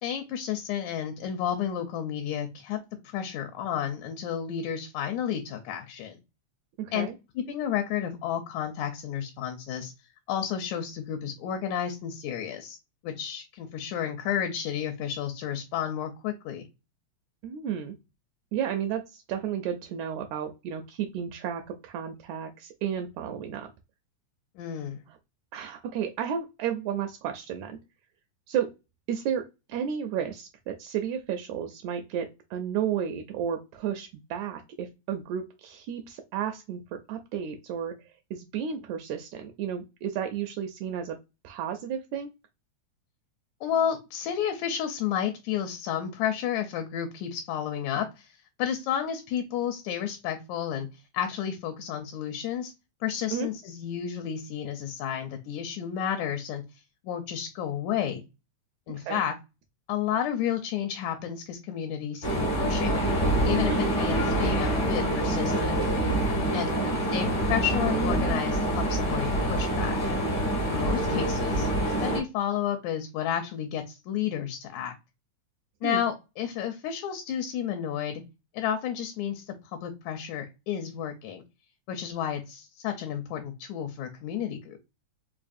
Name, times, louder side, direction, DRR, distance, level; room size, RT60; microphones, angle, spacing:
voice 1, 0.0-2.8 3.0-6.2 6.9-7.1 7.4-9.9 10.3-12.8 13.0-16.7 24.6-25.0 43.6-50.9 51.1-52.7 53.0-56.6 57.0-58.2 58.9-59.4 59.9-63.0 63.4-65.8 66.5-66.7 67.1-70.2 70.7-75.0 75.8-78.2 78.5-81.4 81.9-84.8, left 9 dB, 80° left, 5 dB, 1.9 m, -31 dB
voice 2, 6.8-7.2 17.4-18.0 18.5-23.7 25.1-25.2 25.5-27.8 28.5-28.7 29.1-29.4 29.7-37.9 38.3-41.2 41.4-42.3 53.3-53.5 59.0-59.2 63.7-63.9 66.7-66.9 75.8-76.0, right 8 dB, 80° right, 5 dB, 1.8 m, -32 dB
sound 1, 62.2-72.2, right 1 dB, 60° left, 0.7 m, -26 dB
4.7 x 2.4 x 2.5 m, 0.25 s
omnidirectional pair, 3.3 m